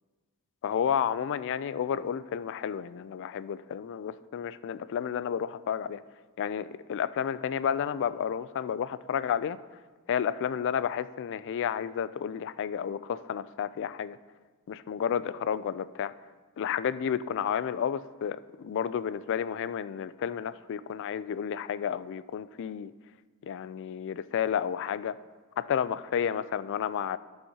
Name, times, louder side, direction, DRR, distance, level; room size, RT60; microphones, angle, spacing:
voice 1, 0.6-6.0 6.4-9.8 10.1-14.2 14.7-16.1 16.6-22.9 23.4-25.2 25.6-27.2, left 8 dB, 55° left, 0.3 m, -31 dB
16.0 x 5.6 x 2.8 m
head